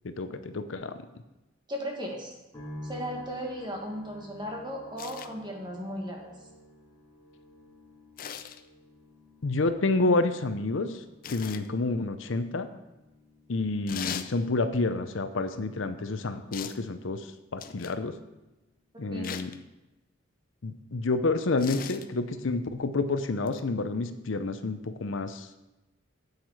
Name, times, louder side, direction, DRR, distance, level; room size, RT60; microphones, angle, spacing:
voice 1, 0.0-1.0 9.4-11.0 11.3-12.7 13.5-18.1 19.0-19.5 20.6-25.5, left 3 dB, 80° left, 10 dB, 0.7 m, -29 dB
voice 2, 1.7-2.3 2.8-6.3 18.9-19.4, equal, 20° right, 0 dB, 1.7 m, -36 dB
sound 1, 2.5-17.8 18.1-18.9, left 1 dB, 20° left, 3.0 m, -51 dB
sound 2, 5.0-5.3 8.2-8.6 11.2-11.7 13.9-14.3 16.5-16.8 17.6-18.0 19.2-19.6 21.6-22.1 23.5-23.6, left 8 dB, 45° left, 0.5 m, -38 dB
8.5 x 8.1 x 4.7 m, 1.0 s
head